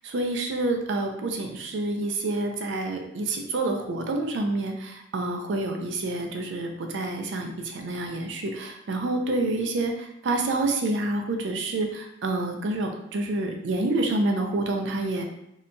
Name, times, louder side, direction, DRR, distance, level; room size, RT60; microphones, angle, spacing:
voice 1, 0.0-15.2, right 2 dB, 75° right, 3 dB, 0.4 m, -28 dB
2.7 x 2.2 x 2.6 m, 0.78 s
head